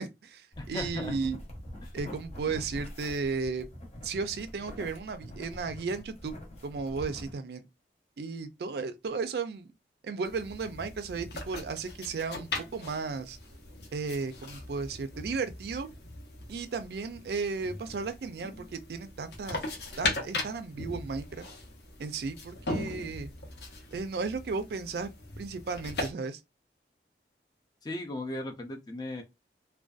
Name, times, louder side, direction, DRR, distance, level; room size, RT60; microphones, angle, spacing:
voice 1, 0.0-1.4 1.9-3.7 4.0-6.4 6.6-7.6 8.2-9.7 10.0-13.4 13.9-15.9 16.5-19.6 20.0-21.5 22.0-23.3 23.9-25.1 25.4-26.4, right 4 dB, 65° right, 0.4 m, -34 dB
sound 1, 0.5-7.3, equal, 40° left, 0.8 m, -44 dB
voice 2, 0.6-1.1 1.8-1.9 27.8-29.2, left 1 dB, 20° left, 0.4 m, -37 dB
sound 2, 10.2-26.1, left 2 dB, 70° left, 0.7 m, -39 dB
2.5 x 2.2 x 2.3 m
head